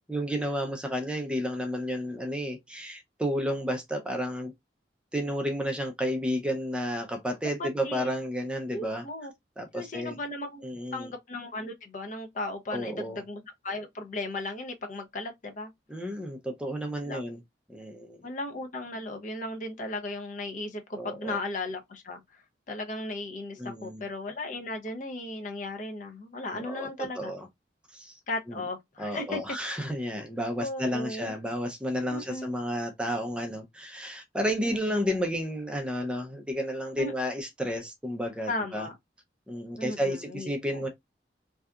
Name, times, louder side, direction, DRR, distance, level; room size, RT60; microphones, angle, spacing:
voice 1, 0.1-4.5 5.1-9.0 9.6-10.2 10.6-11.1 12.7-13.2 15.9-17.4 17.7-18.2 20.9-21.4 23.6-24.0 26.5-27.5 27.9-28.2 28.5-28.6 29.0-38.9 39.5-40.9, equal, 5° right, 0.4 m, -32 dB
voice 2, 7.6-8.1 8.7-9.3 9.7-10.7 10.9-15.7 17.0-17.2 18.2-22.2 22.7-27.3 28.3-29.4 30.6-31.3 32.1-32.5 34.6-35.2 37.0-37.1 38.5-39.0 39.8-40.8, left 2 dB, 45° left, 0.6 m, -36 dB
2.7 x 2.3 x 2.3 m
head